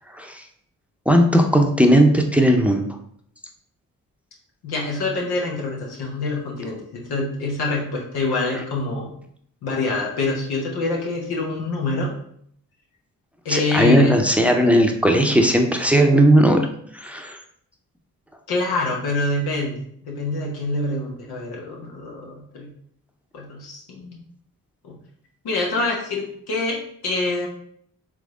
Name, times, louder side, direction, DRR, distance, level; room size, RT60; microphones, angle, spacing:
voice 1, 0.1-0.4 1.1-2.9 8.5-8.6 13.5-16.7 16.9-17.4, right 1 dB, 5° right, 3 dB, 0.7 m, -17 dB
voice 2, 4.6-9.2 9.6-12.1 13.4-14.1 18.5-22.7 23.3-24.2 24.8-25.0 25.4-27.5, left 2 dB, 85° left, -1 dB, 1.0 m, -26 dB
3.7 x 3.3 x 3.6 m, 0.66 s
supercardioid pair, 45°, 37 cm